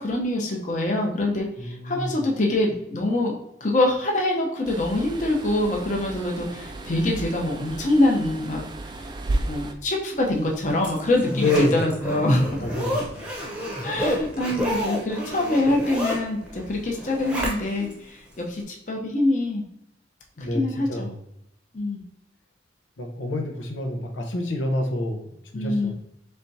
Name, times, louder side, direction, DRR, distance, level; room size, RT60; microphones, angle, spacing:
voice 1, 0.0-3.4 3.6-8.6 9.4-12.5 13.8-19.6 20.4-21.1 21.7-22.0 25.5-25.9, left 1 dB, 40° left, -1 dB, 0.7 m, -24 dB
voice 2, 1.6-2.1 11.3-11.9 12.6-13.1 20.4-21.2 23.0-25.9, left 2 dB, 90° left, 3 dB, 0.7 m, -28 dB
sound 1, 4.6-9.7, right 2 dB, 25° right, 0.3 m, -33 dB
Zipper (clothing), 10.3-17.9 18.4-18.5, equal, 5° right, 0.8 m, -30 dB
4.3 x 3.4 x 2.7 m, 0.82 s
head